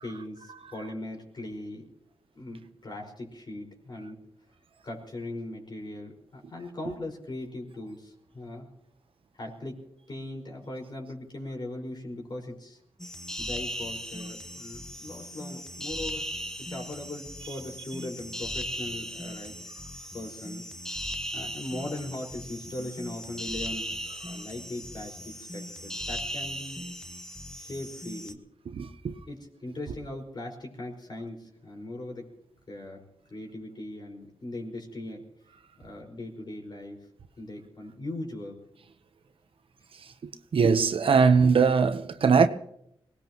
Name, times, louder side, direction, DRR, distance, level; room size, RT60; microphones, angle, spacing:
voice 1, 0.0-1.9 2.3-4.2 4.8-8.7 9.3-9.8 10.1-12.8 13.4-16.3 16.6-19.6 20.1-21.0 21.3-26.9 27.6-28.4 29.3-32.3 32.7-35.3 35.8-37.1 37.4-38.6, left 1 dB, 50° left, 5.2 m, -39 dB
sound 1, 13.0-28.3, equal, 5° left, 1.2 m, -38 dB
voice 2, 28.7-29.2 40.5-42.5, right 5 dB, 65° right, 0.9 m, -21 dB
23.5 x 18.5 x 3.0 m
cardioid pair, 65°, 10 cm